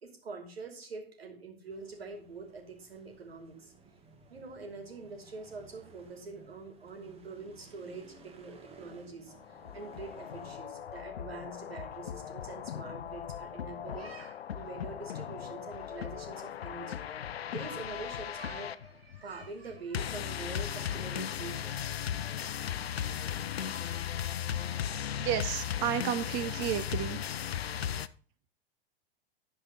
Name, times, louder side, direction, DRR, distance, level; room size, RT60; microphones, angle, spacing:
voice 1, 0.0-3.7 4.3-21.7, right 4 dB, 80° right, 4 dB, 3.0 m, -45 dB
sound 1, 1.7-10.6, right 3 dB, 20° right, 1.9 m, -57 dB
sound 2, 9.3-28.1, left 9 dB, 85° left, 0.6 m, -37 dB
voice 2, 25.1-27.2, right 11 dB, 40° right, 12 dB, 0.9 m, -32 dB
11.5 x 5.0 x 5.4 m, 0.41 s
hypercardioid pair, 105°, 30 cm